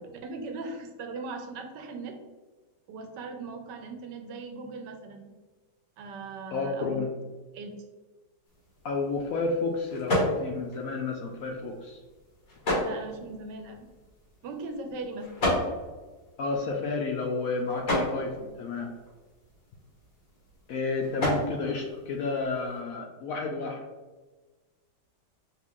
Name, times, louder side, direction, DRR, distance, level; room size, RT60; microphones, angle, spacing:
voice 1, 0.2-2.2 2.9-5.2 6.0-7.0 7.5-7.7 12.8-13.9 14.4-15.3, right 3 dB, 85° right, 5 dB, 1.3 m, -39 dB
voice 2, 6.5-7.1 8.8-12.0 16.4-18.9 20.7-23.8, left 3 dB, 70° left, 1 dB, 0.8 m, -31 dB
sound 1, 8.4-22.8, left 1 dB, 55° left, 2.0 m, -34 dB
5.8 x 2.4 x 3.6 m, 1.3 s
omnidirectional pair, 1.9 m